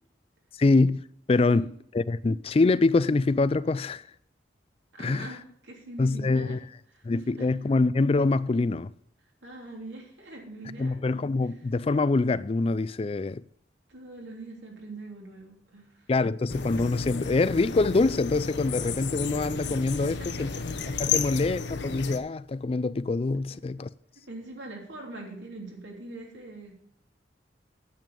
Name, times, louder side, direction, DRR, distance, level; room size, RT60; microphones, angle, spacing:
voice 1, 0.6-1.0 1.3-4.0 5.0-5.3 6.0-6.6 7.0-8.9 10.8-13.4 16.1-20.5 21.0-23.9, left 3 dB, 30° left, 0.3 m, -25 dB
voice 2, 4.9-6.6 6.9-7.5 9.4-11.0 13.9-16.1 19.6-20.3 24.3-26.7, right 2 dB, 75° right, 3.1 m, -43 dB
sound 1, 16.5-22.2, left 5 dB, 70° left, 0.9 m, -32 dB
9.1 x 8.8 x 5.4 m
head